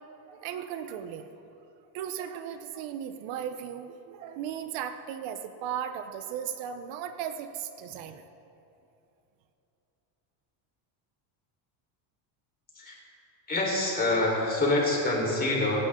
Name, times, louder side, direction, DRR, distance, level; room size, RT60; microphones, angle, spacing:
voice 1, 0.3-1.4 1.9-8.2, right 9 dB, 65° right, 9 dB, 0.9 m, -36 dB
voice 2, 13.5-15.8, left 2 dB, 20° left, -3 dB, 4.2 m, -26 dB
28.0 x 11.0 x 3.8 m, 2.9 s
cardioid pair, 155°, 50 cm